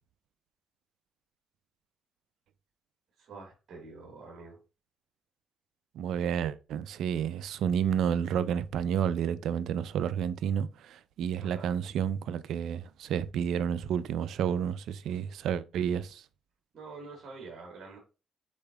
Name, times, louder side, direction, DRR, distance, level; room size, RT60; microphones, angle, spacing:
voice 1, 3.2-4.6 11.4-11.7 16.7-18.0, right 4 dB, 60° right, 1.5 m, -46 dB
voice 2, 5.9-16.2, right 8 dB, 80° right, 0.4 m, -30 dB
5.2 x 4.4 x 2.3 m
cardioid pair, 90°, 0 cm